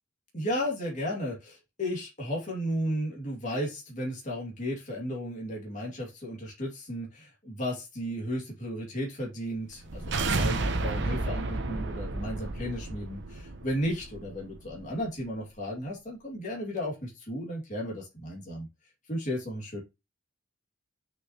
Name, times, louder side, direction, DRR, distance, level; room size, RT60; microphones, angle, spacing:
voice 1, 0.3-18.7 19.1-19.8, equal, 35° left, -2 dB, 2.5 m, -34 dB
sound 1, 9.7-14.8, right 3 dB, 55° right, 1.0 m, -32 dB
6.2 x 6.0 x 3.0 m, 0.23 s
head